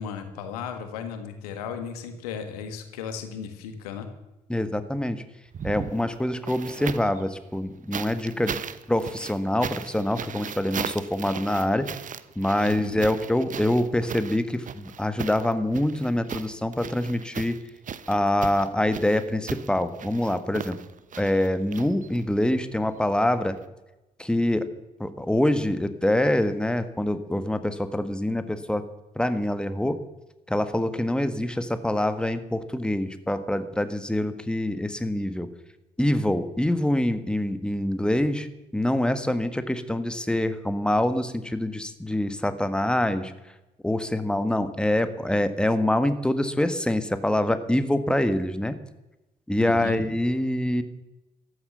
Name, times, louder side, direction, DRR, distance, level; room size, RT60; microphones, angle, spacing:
voice 1, 0.0-4.1 12.6-13.0 49.6-50.0, left 7 dB, 75° left, 8 dB, 1.6 m, -35 dB
voice 2, 4.5-5.2 5.6-8.6 8.9-11.9 12.3-17.6 18.1-20.7 21.2-23.6 24.2-24.7 25.0-28.8 29.1-30.0 30.5-35.5 36.0-38.5 38.7-43.3 43.8-48.8 49.5-50.8, left 1 dB, 5° left, 10 dB, 1.7 m, -25 dB
sound 1, 5.5-7.2 7.9-22.4 23.6-23.7, right 8 dB, 40° right, 1.0 m, -37 dB
14.0 x 13.0 x 6.9 m, 0.97 s
figure-of-eight pair, 45°, 20 cm